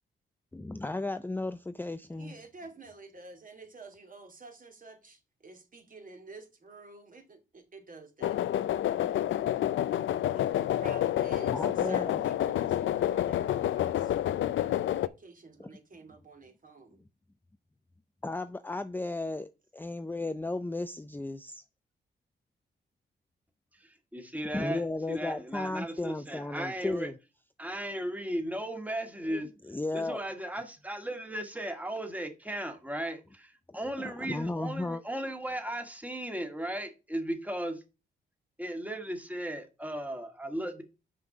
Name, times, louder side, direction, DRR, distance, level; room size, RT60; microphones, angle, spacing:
voice 1, 0.5-2.3 11.5-12.2 15.6-15.7 18.2-21.6 24.5-27.1 29.3-30.2 33.7-35.0, left 2 dB, 10° left, 0.5 m, -35 dB
voice 2, 2.2-8.4 10.3-14.1 14.7-17.0, right 3 dB, 45° right, 2.3 m, -50 dB
sound 1, 8.2-15.1, left 12 dB, 75° left, 0.5 m, -28 dB
voice 3, 23.8-27.1 27.6-29.5 29.9-37.8 38.6-40.8, right 1 dB, 5° right, 1.8 m, -36 dB
5.9 x 5.3 x 6.5 m
cardioid pair, 65°, 20 cm